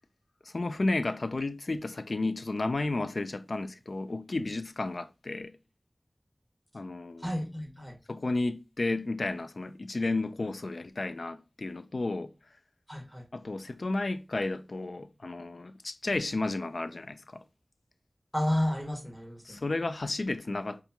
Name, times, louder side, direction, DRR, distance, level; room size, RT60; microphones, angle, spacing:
voice 1, 0.5-5.5 6.7-7.3 8.1-12.3 13.3-17.4 19.5-20.8, left 2 dB, 75° left, 0.3 m, -32 dB
voice 2, 7.2-8.0 12.9-13.2 18.3-19.6, left 1 dB, 10° left, 1.5 m, -31 dB
5.1 x 2.4 x 2.8 m
wide cardioid pair, 40°, 0 cm